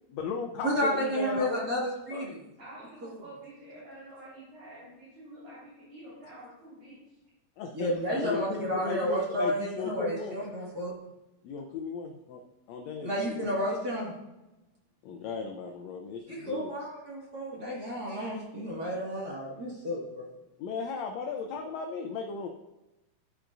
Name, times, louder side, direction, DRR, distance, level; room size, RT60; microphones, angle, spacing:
voice 1, 0.1-1.6 2.1-2.3 7.6-10.4 11.4-12.4 12.7-13.6 15.0-16.7 20.6-22.5, left 5 dB, 75° left, 3 dB, 1.8 m, -36 dB
voice 2, 0.6-2.4 3.0-3.1 7.7-11.0 13.0-14.1 16.3-20.3, equal, 35° right, -4 dB, 2.1 m, -31 dB
voice 3, 2.6-7.0, right 1 dB, 55° right, -10 dB, 5.1 m, -48 dB
12.5 x 9.3 x 2.6 m, 1.0 s
omnidirectional pair, 3.4 m